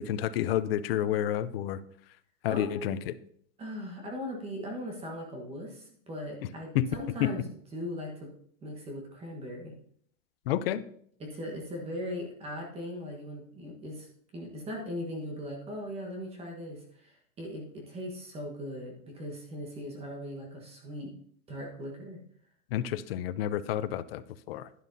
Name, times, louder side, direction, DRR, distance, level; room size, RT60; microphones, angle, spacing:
voice 1, 0.0-1.8 2.4-3.1 6.7-6.9 7.2-7.3 10.5-10.8 22.7-24.7, left 11 dB, 50° left, 14 dB, 0.5 m, -30 dB
voice 2, 2.5-2.9 3.6-8.3 8.6-9.7 11.2-21.1 21.5-22.2, equal, 15° right, 0 dB, 1.3 m, -39 dB
11.0 x 10.0 x 2.7 m, 0.63 s
supercardioid pair, 165°, 40 cm